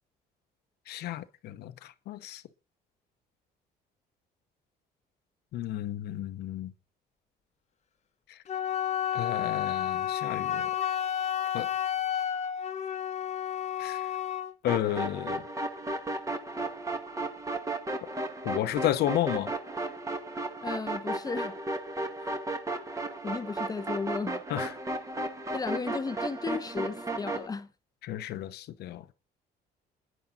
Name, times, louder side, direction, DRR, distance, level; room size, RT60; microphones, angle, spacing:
voice 1, 0.9-2.4 5.5-6.7 8.3-8.4 9.1-10.7 11.5-11.7 13.8-14.1 14.6-15.5 18.4-19.5 22.2-22.3 24.5-24.7 28.0-29.0, left 13 dB, 75° left, 1.0 m, -32 dB
Wind instrument woodwind instrument, 8.5-14.5, left 10 dB, 40° left, 1.2 m, -31 dB
sound 1, 14.7-27.5, right 2 dB, 20° right, 2.0 m, -34 dB
voice 2, 20.6-21.6 23.2-24.4 25.5-27.7, left 4 dB, 20° left, 1.0 m, -34 dB
28.5 x 10.5 x 4.1 m
cardioid pair, 110°, 17 cm